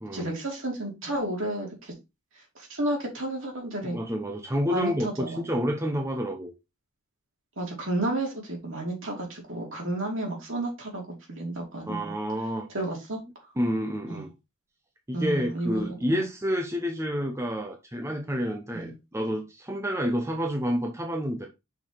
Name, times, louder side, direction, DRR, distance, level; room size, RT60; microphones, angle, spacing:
voice 1, 0.1-1.9 2.6-4.0 4.7-5.4 7.6-12.1 12.7-13.2 14.1-14.2 15.1-16.3 18.7-18.9, right 1 dB, 60° right, 3.4 m, -32 dB
voice 2, 3.8-6.5 11.9-12.7 13.6-14.3 15.1-21.5, equal, 15° right, 0.8 m, -29 dB
5.9 x 4.9 x 4.4 m
head